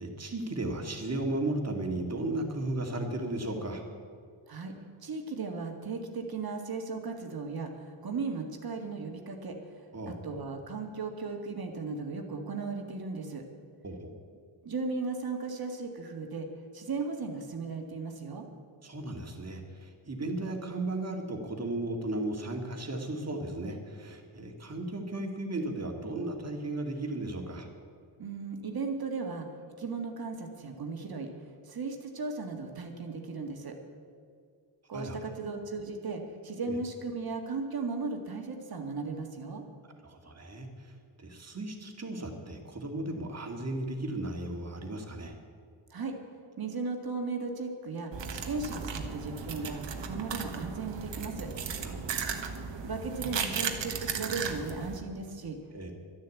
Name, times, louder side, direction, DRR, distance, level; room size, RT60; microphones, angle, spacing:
voice 1, 0.0-3.8 9.9-10.2 13.8-14.1 18.8-27.7 34.9-35.2 36.7-36.8 40.0-40.9 41.2-45.3 51.8-52.3 55.7-55.9, right 2 dB, 30° right, 3 dB, 2.2 m, -35 dB
voice 2, 5.0-9.6 10.1-13.4 14.6-16.5 16.7-18.5 28.2-29.5 29.8-31.3 31.7-33.8 34.9-39.6 45.9-46.1 46.6-51.5 52.8-55.6, right 4 dB, 50° right, 3 dB, 2.0 m, -36 dB
sound 1, 48.1-55.0, right 6 dB, 65° right, 1.5 m, -36 dB
12.0 x 10.5 x 8.4 m, 2.1 s
cardioid pair, 100°, 47 cm